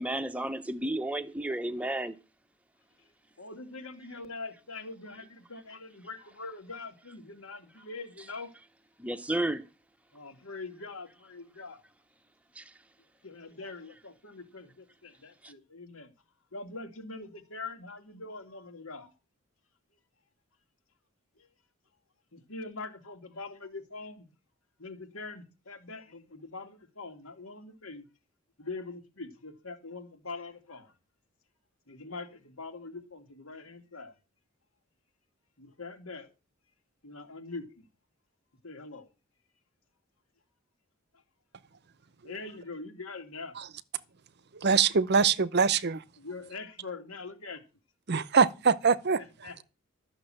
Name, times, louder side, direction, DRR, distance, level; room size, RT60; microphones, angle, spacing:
voice 1, 0.0-2.1 9.0-9.6 12.6-12.7 15.4-15.5, right 1 dB, 5° right, 0.7 m, -32 dB
voice 2, 3.4-8.5 10.1-11.8 13.2-16.1 16.5-19.1 21.4-21.5 22.3-24.3 24.8-28.0 28.6-30.9 31.9-34.1 35.6-36.3 37.0-37.8 38.6-39.1 42.2-43.5 46.2-47.6 49.1-49.6, left 3 dB, 75° left, 2.4 m, -43 dB
voice 3, 44.6-46.0 48.1-49.2, right 5 dB, 50° right, 0.7 m, -23 dB
13.0 x 6.6 x 7.7 m
head